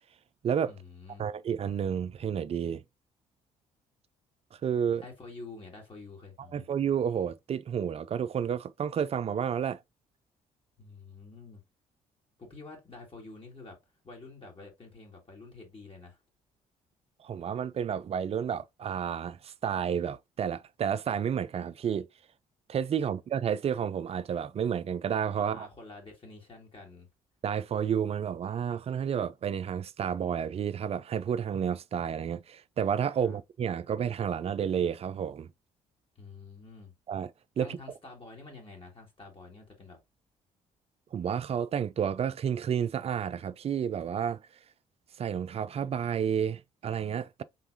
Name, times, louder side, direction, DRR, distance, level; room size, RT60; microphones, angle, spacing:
voice 1, 0.7-1.3 5.0-6.6 10.8-11.6 12.4-13.8 14.0-16.2 23.0-23.1 25.4-27.1 33.2-33.4 36.2-36.9 37.6-40.0, left 3 dB, 30° left, 2.0 m, -48 dB
voice 2, 1.2-2.8 4.5-5.0 6.5-9.8 17.2-22.1 22.7-25.7 27.4-35.5 37.1-37.3 37.6-37.8 41.1-44.4 45.2-47.4, right 8 dB, 35° right, 0.4 m, -31 dB
4.0 x 3.4 x 2.7 m
figure-of-eight pair, 45°, 18 cm